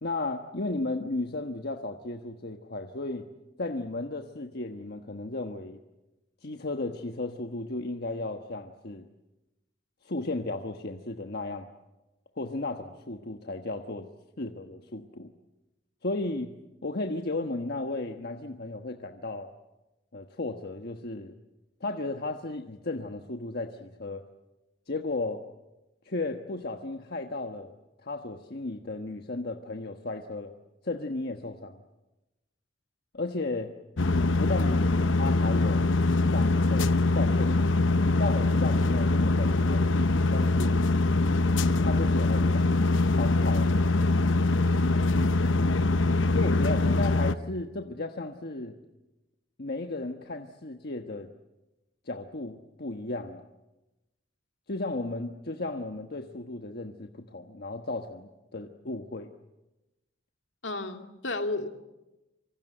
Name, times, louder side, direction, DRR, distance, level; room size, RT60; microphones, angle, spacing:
voice 1, 0.0-3.2 3.6-5.8 6.4-9.0 10.0-11.7 12.4-14.1 14.4-15.3 16.0-16.5 16.8-19.5 20.1-21.3 21.8-24.2 24.9-25.5 26.0-27.7 28.0-30.5 30.8-31.8 33.1-33.7 34.4-35.8 36.3-37.7 38.2-40.8 41.8-43.7 45.5-45.8 46.3-48.8 49.6-51.3 52.0-53.5 54.7-59.3, left 2 dB, 55° left, 4 dB, 1.3 m, -34 dB
sound 1, 34.0-47.3, left 2 dB, 90° left, 0.9 m, -23 dB
voice 2, 60.6-61.7, left 2 dB, 75° left, 5 dB, 2.4 m, -32 dB
26.5 x 24.5 x 7.9 m, 1.0 s
head